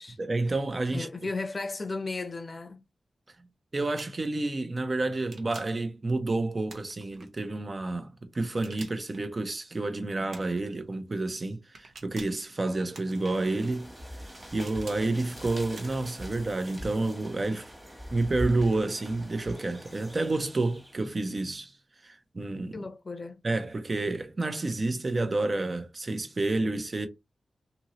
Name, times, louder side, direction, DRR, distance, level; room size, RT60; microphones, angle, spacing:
voice 1, 0.2-1.1 3.7-17.7 18.1-21.8 22.0-22.8 23.4-27.1, right 2 dB, 45° right, 0.6 m, -30 dB
voice 2, 0.9-2.8 22.7-23.4, left 3 dB, 45° left, 0.6 m, -35 dB
sound 1, 3.9-4.3 5.2-5.8 6.7-7.3 8.4-9.2 10.3-10.7 11.7-12.4 12.9-13.5 14.3-15.0 15.7-16.1, right 3 dB, 80° right, 0.8 m, -49 dB
sound 2, 12.8-21.3, equal, 10° right, 1.1 m, -43 dB
2.7 x 2.7 x 2.9 m
cardioid pair, 65°, 0 cm